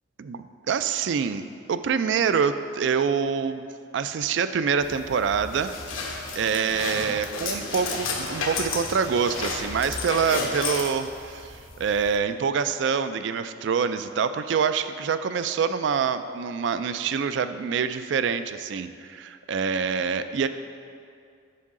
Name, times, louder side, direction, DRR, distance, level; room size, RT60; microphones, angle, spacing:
voice 1, 0.2-3.7 3.9-5.7 6.3-20.5, right 6 dB, 60° right, 11 dB, 0.3 m, -26 dB
sound 1, 4.8-12.2, left 3 dB, 80° left, 1.0 m, -32 dB
8.4 x 6.3 x 3.7 m, 2.3 s
head